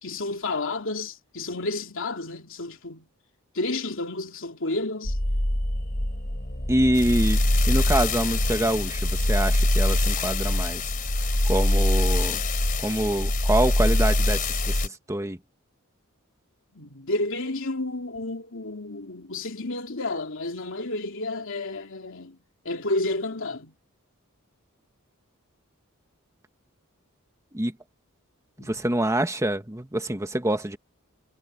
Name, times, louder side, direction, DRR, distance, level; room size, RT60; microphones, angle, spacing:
voice 1, 0.0-3.1 3.5-5.2 16.7-22.4 22.6-23.7 28.6-28.7, left 2 dB, 65° left, 3.2 m, -31 dB
sound 1, 5.0-14.9, left 1 dB, 40° left, 3.4 m, -23 dB
voice 2, 6.7-7.4 7.7-10.9 11.4-12.4 12.8-15.4 27.5-27.7 28.6-30.8, right 1 dB, 15° right, 1.5 m, -26 dB
head